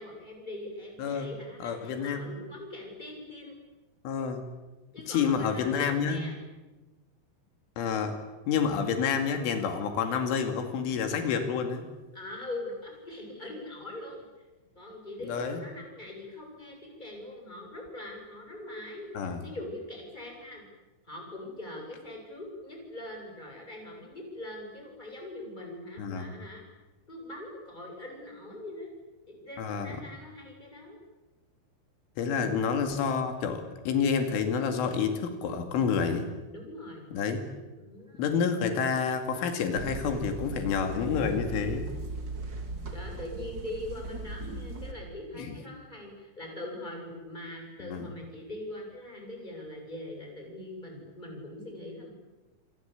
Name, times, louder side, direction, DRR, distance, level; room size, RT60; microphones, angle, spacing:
voice 1, 0.0-3.6 4.9-6.4 12.1-14.2 14.8-20.6 21.0-26.6 27.1-28.9 29.3-31.0 32.2-32.5 36.5-37.1 37.7-38.2 42.9-52.1, left 1 dB, 10° left, 1 dB, 7.4 m, -42 dB
voice 2, 1.6-2.2 4.0-4.4 5.1-6.2 7.8-8.1 8.5-11.9 15.3-15.6 19.2-19.4 26.0-26.3 29.6-30.0 32.2-36.3 37.1-37.5 38.2-41.9 45.3-45.6 47.9-48.1, left 6 dB, 85° left, 6 dB, 4.8 m, -29 dB
sound 1, 39.7-44.9, right 2 dB, 30° right, 2.7 m, -38 dB
28.0 x 24.5 x 8.4 m, 1.2 s
omnidirectional pair, 5.5 m